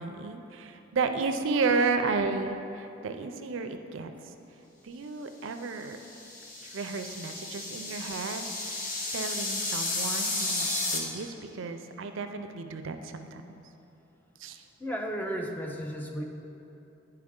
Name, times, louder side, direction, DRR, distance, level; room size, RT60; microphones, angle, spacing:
voice 1, 0.0-4.3 4.8-6.0 6.5-13.4 14.4-14.7, right 4 dB, 70° right, 7 dB, 0.4 m, -32 dB
sound 1, 5.9-11.0, left 2 dB, 40° left, 0.9 m, -33 dB
voice 2, 14.8-16.2, equal, 10° left, 2 dB, 0.4 m, -34 dB
10.5 x 4.6 x 3.7 m, 3.0 s
head